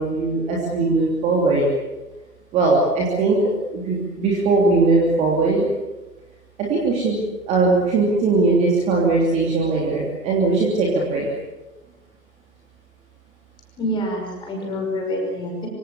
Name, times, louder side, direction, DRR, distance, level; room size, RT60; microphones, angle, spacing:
voice 1, 0.0-1.7 2.5-5.7 6.6-11.3, right 3 dB, 15° right, -3 dB, 3.1 m, -20 dB
voice 2, 13.8-15.7, equal, 10° left, 0 dB, 5.8 m, -26 dB
26.0 x 25.5 x 7.3 m, 1.1 s
figure-of-eight pair, 140°, 49 cm